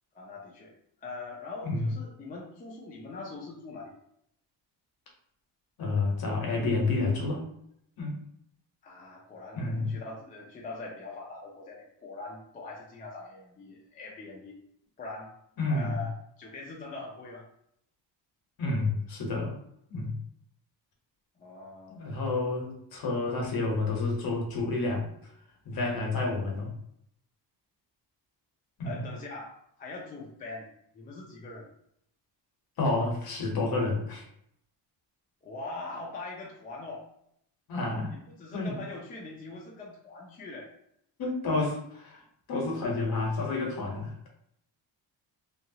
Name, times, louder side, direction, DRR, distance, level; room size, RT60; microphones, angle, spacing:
voice 1, 0.1-0.7 1.0-3.9 8.8-14.6 15.0-15.3 15.7-16.1 16.4-17.5 21.4-22.0 25.7-26.1 28.8-31.7 35.4-37.1 38.3-40.7, left 3 dB, 20° left, -2 dB, 0.3 m, -42 dB
voice 2, 5.8-7.4 8.0-8.2 9.5-9.9 15.6-15.9 18.6-19.5 19.9-20.1 21.9-25.1 25.6-26.7 28.8-29.1 32.8-34.2 37.7-38.1 38.5-38.8 41.2-42.2 42.5-44.3, left 3 dB, 55° left, 0 dB, 0.9 m, -29 dB
3.0 x 2.3 x 2.7 m, 0.72 s
cardioid pair, 175°, 44 cm